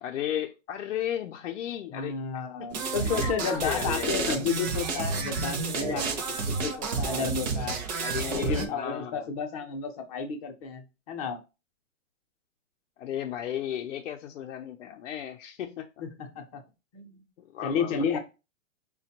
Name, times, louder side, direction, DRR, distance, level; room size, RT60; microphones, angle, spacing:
voice 1, 0.0-2.1 2.6-2.7 3.0-4.3 8.0-9.3 13.0-15.9 17.4-18.1, left 10 dB, 70° left, 0.5 m, -35 dB
voice 2, 1.9-7.8 8.3-11.4 16.0-16.6 16.9-17.2 17.6-18.2, left 6 dB, 30° left, 0.6 m, -32 dB
sound 1, 2.7-8.7, right 4 dB, 35° right, 0.6 m, -30 dB
5.0 x 2.2 x 2.8 m
hypercardioid pair, 150°, 39 cm